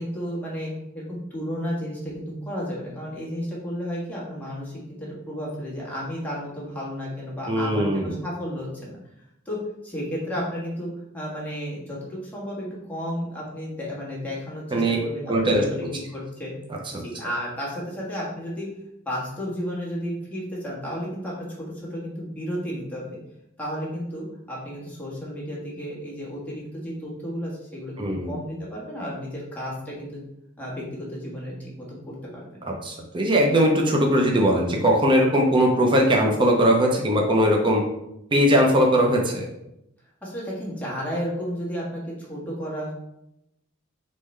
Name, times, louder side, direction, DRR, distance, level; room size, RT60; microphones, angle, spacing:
voice 1, 0.0-9.0 9.4-9.6 9.8-16.5 17.0-18.7 19.0-23.2 23.6-30.2 30.6-31.9 32.3-32.6 40.2-42.9, equal, 10° left, -6 dB, 1.3 m, -33 dB
voice 2, 7.5-8.1 14.7-15.0 15.3-15.9 16.7-17.0 28.0-28.4 32.6-37.8 38.3-39.5, equal, 25° right, 0 dB, 0.5 m, -20 dB
4.0 x 3.6 x 3.2 m, 0.84 s
head